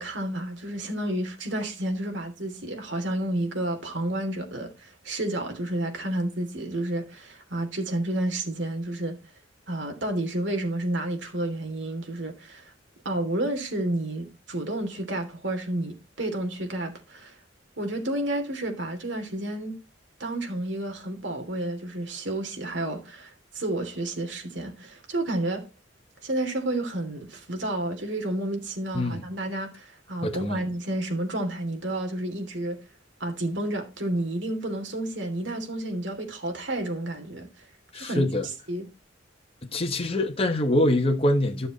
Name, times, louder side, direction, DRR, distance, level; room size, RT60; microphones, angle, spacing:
voice 1, 0.0-9.2 9.7-12.7 13.0-17.3 17.8-19.8 20.2-25.7 26.2-32.8 33.2-37.5 37.9-38.2 38.7-38.9, right 1 dB, 70° right, 3.1 m, -30 dB
voice 2, 30.2-30.6 37.9-38.5 39.6-41.7, left 1 dB, 30° left, 1.4 m, -24 dB
12.5 x 7.0 x 4.1 m
head